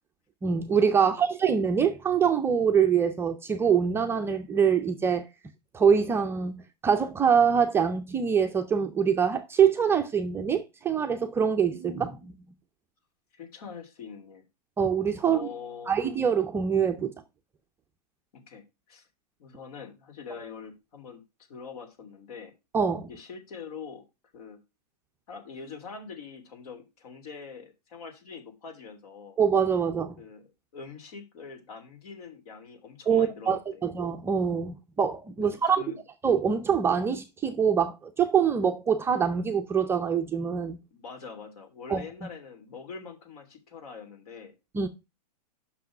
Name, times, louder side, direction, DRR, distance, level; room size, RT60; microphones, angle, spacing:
voice 1, 0.4-5.3 5.7-12.3 14.8-15.4 15.9-17.1 22.7-23.1 29.4-30.1 33.1-35.8 36.2-40.8 41.9-42.3 44.7-44.9, right 7 dB, 10° right, 0.5 m, -24 dB
voice 2, 1.0-1.3 13.3-14.5 15.2-16.0 18.3-19.1 19.4-21.2 21.5-22.5 23.0-24.0 24.3-24.6 25.3-29.4 30.2-30.4 30.7-33.9 35.4-36.0 40.9-44.5, left 5 dB, 60° left, 3.0 m, -44 dB
6.0 x 5.7 x 6.0 m
hypercardioid pair, 145°, 21 cm